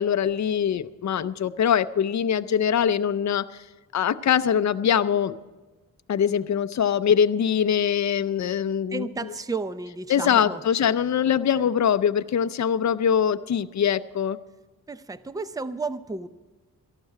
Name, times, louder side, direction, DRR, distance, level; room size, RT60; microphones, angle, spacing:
voice 1, 0.0-3.5 3.9-5.3 6.1-9.1 10.1-14.4, left 8 dB, 50° left, 11 dB, 0.5 m, -23 dB
voice 2, 8.9-10.6 11.5-11.7 14.9-16.3, right 3 dB, 10° right, 13 dB, 0.5 m, -32 dB
18.5 x 13.5 x 4.8 m, 1.2 s
wide cardioid pair, 135°, 36 cm